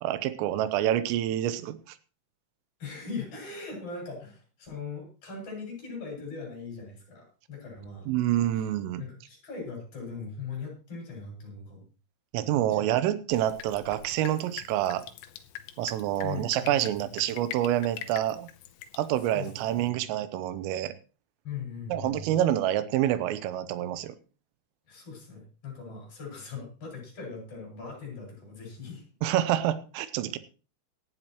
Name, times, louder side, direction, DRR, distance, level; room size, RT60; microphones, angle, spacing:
voice 1, 0.0-2.0 8.1-9.0 12.3-15.0 15.8-18.5 18.9-20.9 21.9-24.2 29.2-30.4, right 12 dB, 85° right, 13 dB, 3.5 m, -27 dB
voice 2, 2.8-8.1 8.5-8.7 9.0-11.8 12.5-12.9 16.2-17.0 19.2-19.5 19.7-20.1 21.4-22.4 24.9-29.0, left 5 dB, 30° left, -1 dB, 6.8 m, -40 dB
Drip, 13.3-19.9, left 11 dB, 80° left, 3.3 m, -45 dB
18.0 x 12.0 x 3.0 m, 0.34 s
omnidirectional pair, 5.8 m